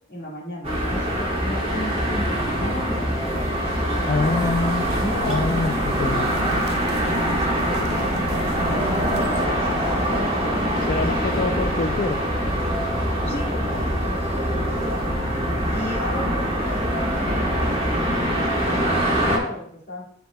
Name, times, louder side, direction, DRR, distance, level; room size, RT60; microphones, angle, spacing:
voice 1, 0.1-3.5 4.0-4.4 5.0-7.1 7.7-8.1 8.5-10.3 11.0-11.5 13.2-15.0 15.7-20.0, left 1 dB, 70° left, -9 dB, 1.8 m, -35 dB
sound 1, 0.6-19.4, equal, 35° right, 1.3 m, -24 dB
voice 2, 4.1-4.9 5.3-6.3 10.9-12.2, left 3 dB, 50° left, 4 dB, 0.4 m, -25 dB
sound 2, 4.2-9.5, right 3 dB, 60° right, 0.4 m, -34 dB
sound 3, 5.0-10.7 11.9-18.2, equal, 5° right, 0.8 m, -43 dB
10.5 x 4.6 x 2.3 m, 0.67 s
head